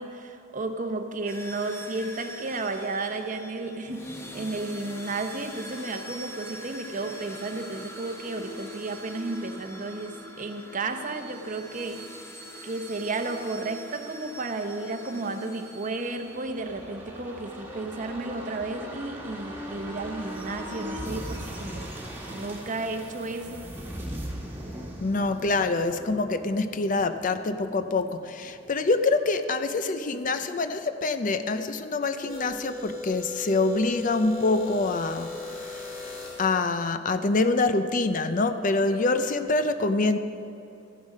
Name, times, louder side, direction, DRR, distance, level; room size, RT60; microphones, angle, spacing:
voice 1, 0.0-12.0 12.6-21.9 22.3-23.7, right 2 dB, 40° right, 7 dB, 0.8 m, -33 dB
sound 1, 1.3-16.9, equal, 15° left, 1.0 m, -43 dB
sound 2, 16.0-29.4 29.8-29.9, equal, 10° right, 1.6 m, -39 dB
voice 2, 25.0-35.8 36.4-40.2, left 3 dB, 40° left, 9 dB, 0.5 m, -25 dB
sound 3, 32.2-36.6, left 3 dB, 80° left, 2.4 m, -37 dB
14.0 x 11.0 x 5.4 m, 2.7 s
head